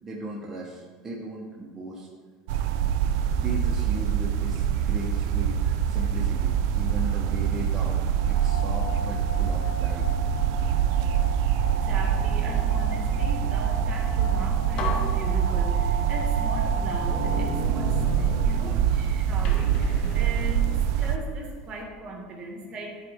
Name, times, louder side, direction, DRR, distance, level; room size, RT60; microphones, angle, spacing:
voice 1, 0.0-2.1 3.3-5.6 5.9-8.0 8.2-10.1, right 1 dB, 20° right, -3 dB, 1.0 m, -37 dB
sound 1, 2.5-21.2, right 8 dB, 70° right, 0.4 m, -25 dB
sound 2, 8.1-18.2, left 3 dB, 65° left, 1.9 m, -39 dB
voice 2, 11.7-20.7 21.0-23.0, right 1 dB, 40° right, 1 dB, 1.6 m, -38 dB
sound 3, 14.2-14.3 14.8-16.1 16.7-19.0 19.4-21.3, left 4 dB, 45° left, 0.9 m, -35 dB
9.4 x 4.1 x 3.6 m, 1.5 s
supercardioid pair, 110°, 2 cm